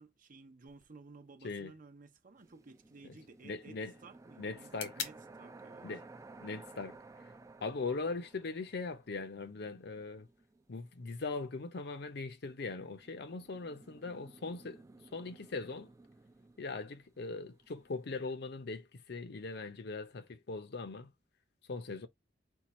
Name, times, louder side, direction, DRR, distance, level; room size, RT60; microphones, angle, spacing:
voice 1, 0.0-5.9, right 3 dB, 50° right, 0.7 m, -55 dB
sound 1, 0.7-8.7, left 7 dB, 85° left, 1.3 m, -51 dB
sound 2, 2.4-11.8 12.6-18.3, right 3 dB, 15° right, 0.4 m, -57 dB
voice 2, 3.4-3.9 4.4-4.9 5.8-6.0 6.4-7.0 7.6-10.3 10.7-14.8 15.1-15.9 16.6-21.1 21.7-22.1, left 3 dB, 65° left, 0.6 m, -40 dB
4.5 x 2.4 x 4.1 m
head